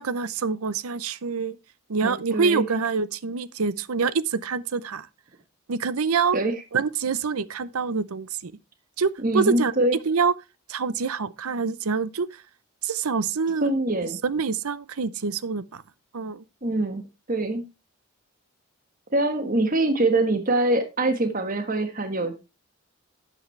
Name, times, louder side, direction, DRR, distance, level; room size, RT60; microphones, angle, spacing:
voice 1, 0.0-1.6 1.9-5.1 5.7-6.4 6.7-8.5 9.0-9.7 10.1-10.3 10.7-12.4 12.8-13.7 14.2-15.8 16.1-16.4, right 5 dB, 85° right, 0.7 m, -26 dB
voice 2, 2.0-2.6 6.3-6.5 9.2-10.0 13.6-14.2 16.6-17.0 17.3-17.6 19.1-22.4, right 2 dB, 40° right, 1.4 m, -24 dB
12.0 x 8.6 x 3.3 m
head